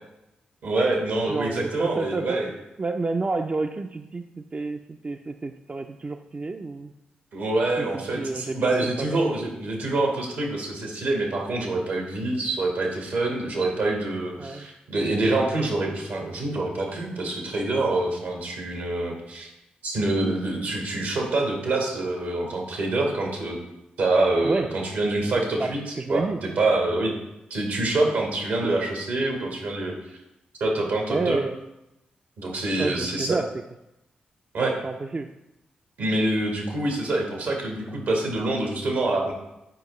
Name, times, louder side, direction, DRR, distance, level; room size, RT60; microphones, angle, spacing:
voice 1, 0.6-2.5 7.3-19.5 19.8-23.6 24.0-27.2 27.5-29.9 30.6-31.4 32.4-33.4 34.5-34.7 36.0-39.3, right 2 dB, 80° right, 0 dB, 1.5 m, -26 dB
voice 2, 1.3-2.5 2.8-6.9 7.8-9.4 14.4-14.7 24.4-24.7 25.6-25.7 26.0-26.4 31.1-31.6 32.8-33.5 34.6-35.3, right 3 dB, 35° right, 6 dB, 0.4 m, -30 dB
7.7 x 4.7 x 3.1 m, 0.93 s
supercardioid pair, 40°, 4 cm